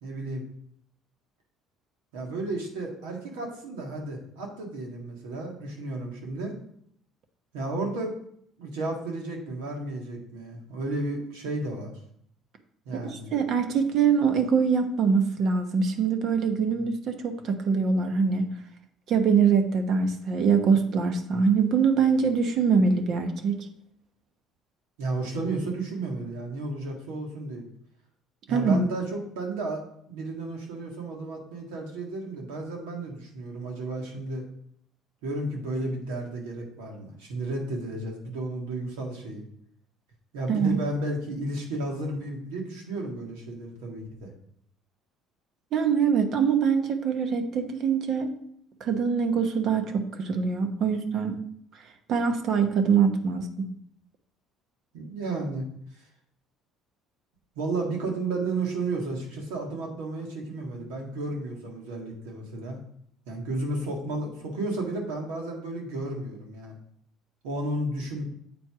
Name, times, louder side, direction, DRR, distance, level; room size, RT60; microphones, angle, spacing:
voice 1, 0.0-0.4 2.1-6.6 7.5-8.2 8.6-11.9 12.8-13.3 25.0-27.6 28.5-34.4 35.2-39.4 40.3-44.3 54.9-55.7 57.5-62.8 63.3-66.7 67.4-68.2, right 2 dB, 90° right, 1 dB, 1.7 m, -33 dB
voice 2, 12.9-18.5 19.1-23.6 28.5-28.8 40.5-40.8 45.7-48.3 48.8-51.4 52.1-53.5, right 6 dB, 60° right, 7 dB, 1.0 m, -23 dB
7.9 x 4.4 x 4.7 m, 0.68 s
supercardioid pair, 90°, 0 cm